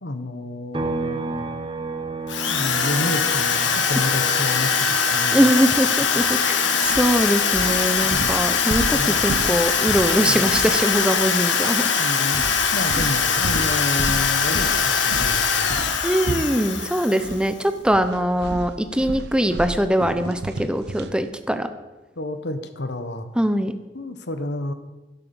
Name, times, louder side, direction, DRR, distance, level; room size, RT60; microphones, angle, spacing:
voice 1, 0.0-1.5 2.4-5.4 6.0-6.1 6.9-7.0 8.0-8.4 8.9-9.3 10.2-10.7 11.8-12.4 12.7-15.8 22.2-23.3 23.9-24.7, left 2 dB, 65° left, 9 dB, 1.3 m, -30 dB
sound 1, 0.7-14.3 14.6-16.8, right 3 dB, 30° right, 1.1 m, -36 dB
Drill, 2.3-17.5, left 6 dB, 80° left, 1.6 m, -22 dB
voice 2, 5.3-6.6 6.8-11.8 16.0-21.7 23.4-23.7, equal, 5° right, 9 dB, 0.9 m, -22 dB
sound 2, 6.2-6.4 6.8-11.3 11.6-11.8 12.3-17.4 17.8-21.2, right 2 dB, 65° right, 0.8 m, -33 dB
11.5 x 11.0 x 7.1 m, 1.1 s
head